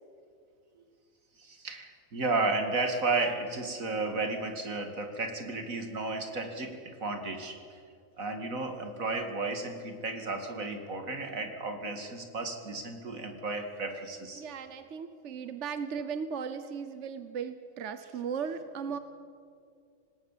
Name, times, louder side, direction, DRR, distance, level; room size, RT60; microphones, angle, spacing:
voice 1, 1.4-7.8 8.2-14.4, right 3 dB, 90° right, 5 dB, 2.8 m, -33 dB
voice 2, 14.4-19.0, right 6 dB, 65° right, 10 dB, 1.2 m, -37 dB
26.5 x 19.0 x 7.5 m, 2.3 s
omnidirectional pair, 1.4 m